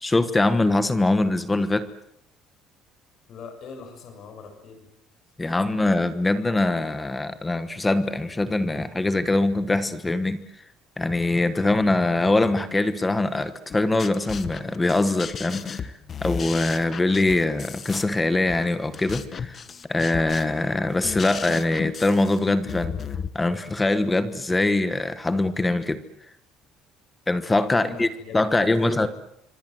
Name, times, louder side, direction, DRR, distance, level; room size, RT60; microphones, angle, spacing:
voice 1, 0.0-1.9 5.4-10.4 11.0-19.6 19.9-23.0 23.3-26.0 27.3-28.1 28.3-29.1, left 2 dB, 10° left, 12 dB, 1.3 m, -23 dB
voice 2, 3.3-4.9 27.8-29.1, left 5 dB, 45° left, 5 dB, 7.0 m, -41 dB
sound 1, 13.7-23.3, left 6 dB, 30° left, 1.3 m, -34 dB
26.0 x 25.5 x 7.9 m, 0.76 s
cardioid pair, 165°, 0 cm